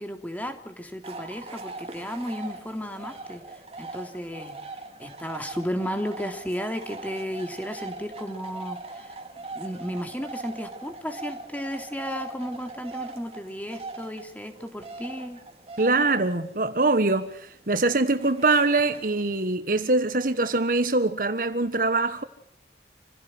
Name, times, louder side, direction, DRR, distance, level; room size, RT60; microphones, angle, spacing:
voice 1, 0.0-4.6 5.0-9.2 9.5-15.4, equal, 10° left, 3.3 m, -34 dB
sound 1, 1.0-19.5, right 3 dB, 35° right, 3.4 m, -41 dB
voice 2, 15.8-22.2, right 3 dB, 50° right, 1.5 m, -23 dB
28.5 x 16.5 x 7.9 m
head